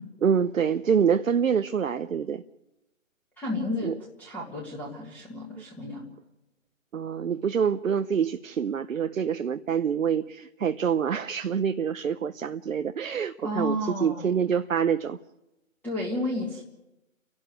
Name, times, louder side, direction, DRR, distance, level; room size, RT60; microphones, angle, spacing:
voice 1, 0.2-2.4 3.8-3.9 6.9-15.2, right 7 dB, 75° right, 0.8 m, -26 dB
voice 2, 3.4-3.9 4.2-6.1 13.4-14.3 15.8-16.6, left 1 dB, 5° left, 1.8 m, -32 dB
30.0 x 11.5 x 9.2 m
figure-of-eight pair, 150°, 40 cm